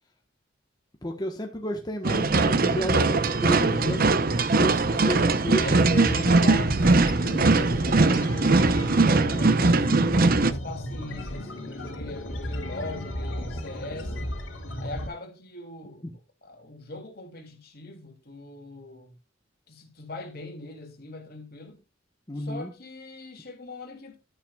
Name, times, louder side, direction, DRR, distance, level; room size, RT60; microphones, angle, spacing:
voice 1, 1.0-4.0 4.5-6.2 22.3-22.7, equal, 20° left, 1.2 m, -32 dB
sound 1, 2.0-10.5, right 3 dB, 50° right, 0.8 m, -21 dB
voice 2, 3.5-4.5 4.8-5.2 5.6-9.9 10.4-14.3 14.8-16.0 16.4-19.2 19.7-21.8 22.3-24.2, left 2 dB, 55° left, 3.1 m, -40 dB
sound 2, 6.1-15.1, equal, 75° left, 2.5 m, -34 dB
12.0 x 10.0 x 2.4 m
head